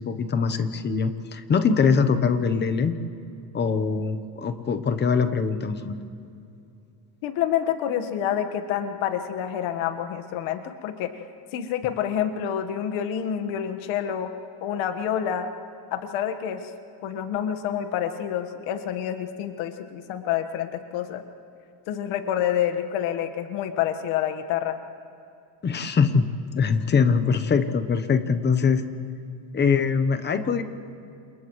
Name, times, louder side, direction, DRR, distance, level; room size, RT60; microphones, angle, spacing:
voice 1, 0.0-2.9 3.5-6.0 25.6-26.2 26.5-28.8 29.5-30.6, left 5 dB, 20° left, 9 dB, 0.9 m, -22 dB
voice 2, 7.2-11.1 11.5-14.3 14.6-15.5 15.9-16.7 17.0-21.2 21.9-24.8, left 9 dB, 70° left, 7 dB, 1.6 m, -28 dB
29.5 x 28.0 x 3.2 m, 2.6 s
cardioid pair, 160°, 49 cm